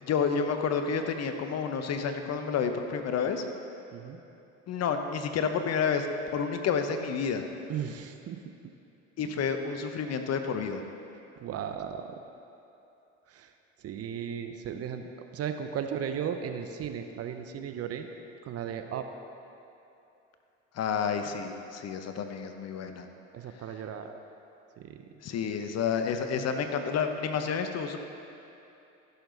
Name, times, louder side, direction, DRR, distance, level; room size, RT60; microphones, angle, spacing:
voice 1, 0.0-3.4 4.7-6.1 6.3-7.5 9.2-10.8 20.7-23.1 25.2-28.0, left 6 dB, 40° left, 6 dB, 1.0 m, -30 dB
voice 2, 7.7-8.4 11.4-12.2 13.3-13.5 13.8-15.1 15.3-18.1 18.4-19.1 23.3-24.2 24.8-25.1, right 8 dB, 40° right, 7 dB, 0.7 m, -36 dB
14.5 x 6.9 x 4.0 m, 2.8 s
hypercardioid pair, 85°, 38 cm